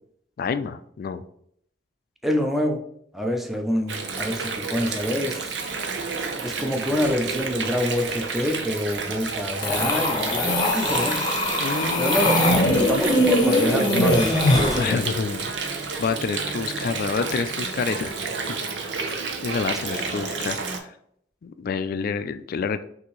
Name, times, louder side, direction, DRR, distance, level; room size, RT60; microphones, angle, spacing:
voice 1, 0.4-1.2 11.6-13.0 14.7-15.5 16.0-18.1 19.1-19.2 19.4-20.6 21.4-22.8, left 5 dB, 55° left, 11 dB, 0.3 m, -28 dB
voice 2, 2.2-2.8 3.1-5.5 6.4-11.3 12.0-12.3 12.7-15.0 19.9-20.1, left 1 dB, ahead, 2 dB, 0.5 m, -26 dB
Water, 3.9-20.8, right 4 dB, 85° right, 0.7 m, -30 dB
sound 1, 9.6-14.9, left 1 dB, 25° left, 0.9 m, -21 dB
5.8 x 2.7 x 3.1 m, 0.69 s
head